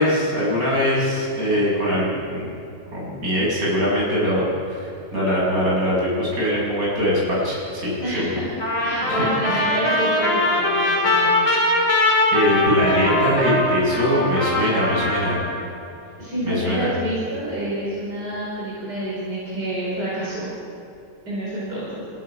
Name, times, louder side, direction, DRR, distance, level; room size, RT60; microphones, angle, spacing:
voice 1, 0.0-2.5 2.9-8.3 9.1-9.2 9.4-9.6 12.3-15.4 16.4-16.9, equal, 60° right, -6 dB, 7.0 m, -22 dB
voice 2, 8.0-8.6 8.8-11.4 12.5-13.3 16.2-20.5 21.3-22.0, right 1 dB, 80° right, -7 dB, 5.4 m, -28 dB
Trumpet, 8.6-15.6, left 1 dB, 50° left, 5.3 m, -21 dB
28.5 x 16.0 x 5.8 m, 2.6 s
omnidirectional pair, 1.8 m